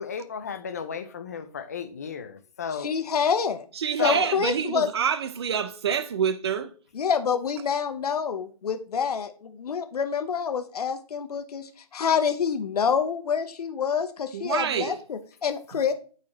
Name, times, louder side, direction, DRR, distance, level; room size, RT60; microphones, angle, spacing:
voice 1, 0.0-2.9 4.0-4.3, left 6 dB, 25° left, 0.4 m, -33 dB
voice 2, 2.8-3.6 4.0-4.9 6.9-15.9, left 6 dB, 70° left, 0.7 m, -27 dB
voice 3, 3.7-6.7 14.3-15.0 15.7-15.8, right 7 dB, 40° right, 0.5 m, -27 dB
8.5 x 4.2 x 3.1 m
hypercardioid pair, 165°, 20 cm